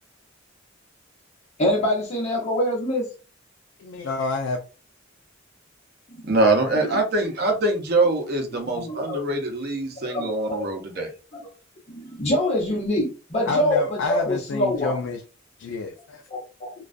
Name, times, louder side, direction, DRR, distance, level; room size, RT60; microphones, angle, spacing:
voice 1, 1.6-3.1 6.1-6.2 6.8-7.0 8.7-9.2 10.1-10.7 11.3-11.5 11.9-15.0 16.3-16.7, left 1 dB, 35° left, 0.9 m, -25 dB
voice 2, 3.8-4.6 13.5-15.2 15.6-16.2, left 3 dB, 75° left, 0.3 m, -28 dB
voice 3, 6.3-11.1, right 2 dB, 55° right, 0.6 m, -23 dB
2.3 x 2.2 x 2.4 m
head